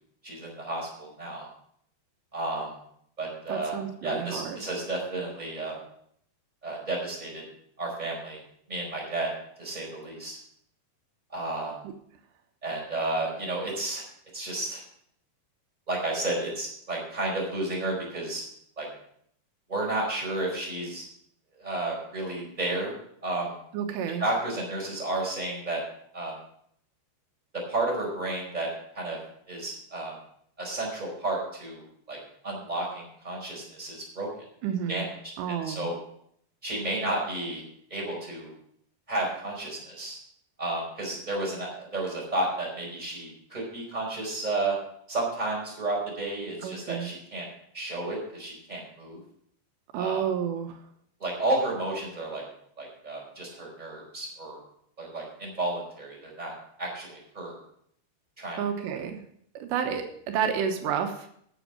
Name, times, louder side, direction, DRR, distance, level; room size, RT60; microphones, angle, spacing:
voice 1, 0.2-1.5 2.3-2.7 3.2-3.8 4.0-5.8 6.6-7.4 7.8-8.4 8.7-9.3 9.6-10.4 11.3-11.8 12.6-14.0 14.3-14.8 15.9-18.4 18.8-18.9 19.7-21.0 21.6-22.9 23.2-23.6 24.2-25.8 26.1-26.4 27.5-28.7 28.9-29.2 29.5-30.1 30.6-32.2 32.4-34.3 34.9-35.9 36.6-37.6 37.9-38.5 39.1-40.2 40.6-44.8 45.1-47.5 47.7-49.2 49.9-50.2 51.2-52.4 52.8-54.6 55.0-57.6 58.4-58.6, right 2 dB, 10° right, -2 dB, 4.3 m, -32 dB
voice 2, 3.5-4.6 23.7-24.2 34.6-35.0 35.4-35.9 46.6-47.1 49.9-50.8 58.6-59.2 59.5-61.3, right 8 dB, 85° right, 5 dB, 3.2 m, -30 dB
12.5 x 7.2 x 5.9 m, 0.68 s
omnidirectional pair, 5.0 m